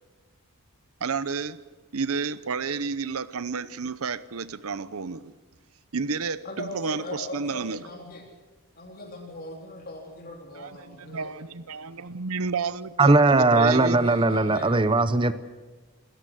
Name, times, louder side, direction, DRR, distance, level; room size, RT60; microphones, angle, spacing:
voice 1, 1.0-5.3 5.9-7.8 10.6-14.1, right 5 dB, 80° right, 0.8 m, -31 dB
voice 2, 6.4-8.2 8.8-11.3 13.3-14.8, left 1 dB, 40° left, 3.5 m, -39 dB
voice 3, 13.0-15.3, right 2 dB, 25° right, 0.7 m, -19 dB
27.0 x 14.0 x 7.8 m
head